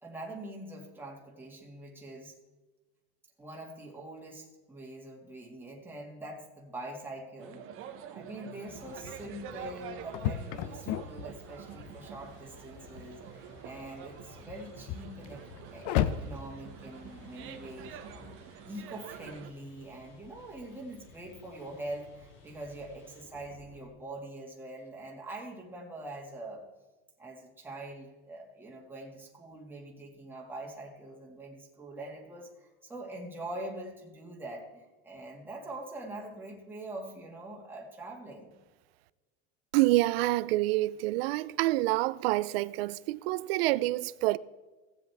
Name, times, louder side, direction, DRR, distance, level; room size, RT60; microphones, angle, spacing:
voice 1, 0.0-2.4 3.4-18.0 18.4-26.7 27.2-38.5, right 1 dB, 5° right, 2.0 m, -44 dB
sound 1, 7.4-19.5, right 9 dB, 45° right, 1.0 m, -47 dB
sound 2, 8.6-23.9, left 2 dB, 40° left, 3.8 m, -57 dB
sound 3, 8.7-18.4, left 10 dB, 55° left, 0.7 m, -37 dB
voice 2, 39.7-44.4, right 18 dB, 75° right, 0.5 m, -27 dB
16.5 x 7.7 x 3.4 m
supercardioid pair, 135°, 31 cm